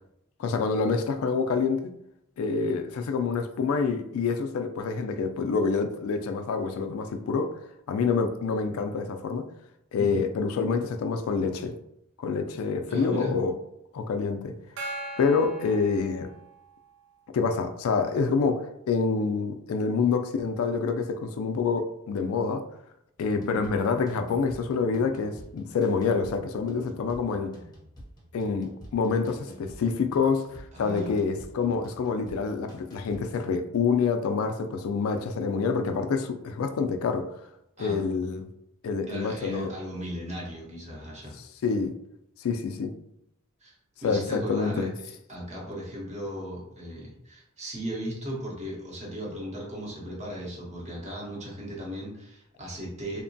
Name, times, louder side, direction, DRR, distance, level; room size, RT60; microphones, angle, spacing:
voice 1, 0.4-1.9 2.4-7.5 7.9-9.5 9.9-11.8 12.2-13.5 13.9-14.5 15.2-16.3 17.3-22.6 23.2-27.6 28.3-37.3 37.8-38.5 38.8-39.7 41.6-41.9 42.4-42.9 44.0-44.9, left 5 dB, 80° left, 7 dB, 0.3 m, -27 dB
voice 2, 12.9-13.3 30.7-31.1 37.8-38.0 39.1-41.3 43.6-43.7 44.0-44.9 45.3-53.2, equal, 35° right, -3 dB, 0.8 m, -36 dB
Gong, 14.8-16.8, right 2 dB, 70° right, 0.5 m, -39 dB
sound 1, 23.2-33.5, equal, 20° left, 0.6 m, -49 dB
2.9 x 2.1 x 2.6 m, 0.79 s
head